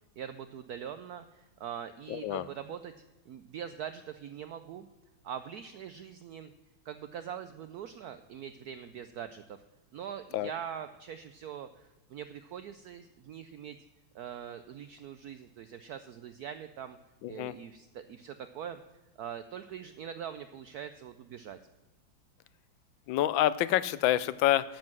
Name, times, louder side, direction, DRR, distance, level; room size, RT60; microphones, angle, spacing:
voice 1, 0.2-2.9 3.3-4.9 5.2-6.5 6.9-9.6 9.9-13.8 14.1-17.0 17.3-18.8 19.2-21.6, right 8 dB, 80° right, 11 dB, 0.8 m, -42 dB
voice 2, 2.1-2.5 10.3-10.5 17.2-17.5 23.1-24.8, left 13 dB, 80° left, 16 dB, 1.3 m, -27 dB
12.0 x 7.5 x 6.1 m, 1.1 s
omnidirectional pair, 2.2 m